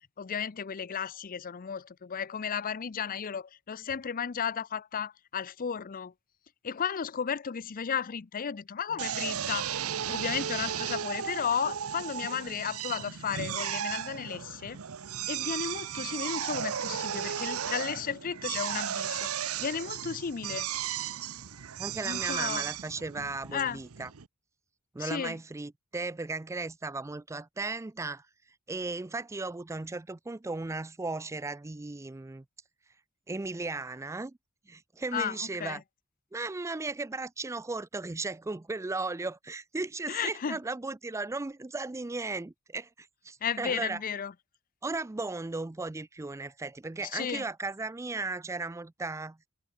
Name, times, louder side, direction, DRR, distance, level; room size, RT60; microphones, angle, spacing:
voice 1, 0.2-6.1 6.6-9.8 10.1-14.8 15.3-20.7 22.0-22.7 23.5-23.8 25.0-25.4 35.1-35.8 40.1-40.6 43.4-44.3 47.1-47.4, left 7 dB, 40° left, 0.5 m, -34 dB
Drill, 9.0-24.3, right 9 dB, 75° right, 0.8 m, -35 dB
voice 2, 21.8-24.1 24.9-28.3 28.7-32.4 33.3-34.4 34.7-35.8 36.3-44.0 44.8-49.4, right 3 dB, 15° right, 0.4 m, -36 dB
head